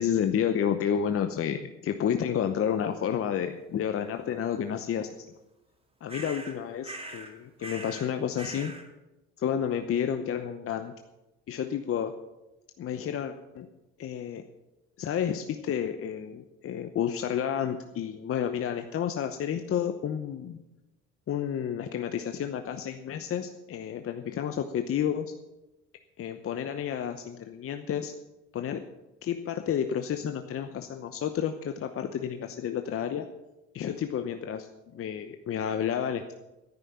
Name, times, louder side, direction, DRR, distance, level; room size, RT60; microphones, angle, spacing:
voice 1, 0.0-5.1 6.0-8.7 9.4-10.9 11.5-12.2 12.8-13.7 14.0-14.4 15.0-20.6 21.3-25.3 26.2-28.1 28.5-28.8 29.2-33.3 33.7-36.3, left 8 dB, 45° left, 7 dB, 0.9 m, -30 dB
sound 1, 6.1-6.6 6.8-7.3 7.6-8.1 8.3-8.8, right 2 dB, 20° right, 2.8 m, -41 dB
11.0 x 9.2 x 7.2 m, 0.99 s
supercardioid pair, 85°, 30 cm